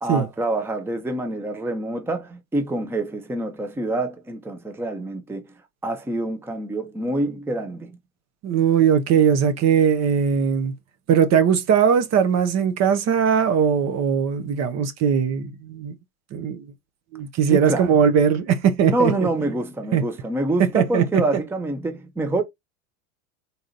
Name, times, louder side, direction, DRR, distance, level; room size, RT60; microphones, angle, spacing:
voice 1, 0.0-5.5 5.8-7.9 17.5-18.0 18.9-22.4, right 2 dB, 5° right, 0.7 m, -26 dB
voice 2, 8.4-10.7 11.1-15.9 16.3-16.7 17.1-19.1 19.9-20.0 20.6-21.2, right 7 dB, 40° right, 0.9 m, -19 dB
4.0 x 3.6 x 2.7 m
hypercardioid pair, 95°, 41 cm